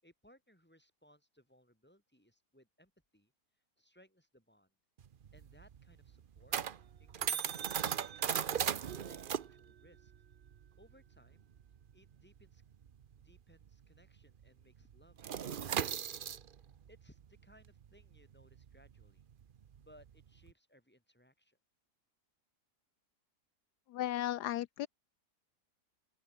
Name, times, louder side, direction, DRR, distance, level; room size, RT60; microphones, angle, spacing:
voice 1, 0.0-3.3 3.8-4.7 5.3-6.6 7.0-8.6 9.0-10.1 10.8-11.5 11.9-12.6 13.2-16.2 16.6-19.3 19.8-21.6, equal, 5° left, 7.2 m, -65 dB
sound 1, 5.0-14.0 14.2-14.5 14.8-20.5, right 8 dB, 55° right, 0.6 m, -38 dB
voice 2, 23.9-24.9, left 13 dB, 80° left, 1.2 m, -35 dB
open air
omnidirectional pair, 1.7 m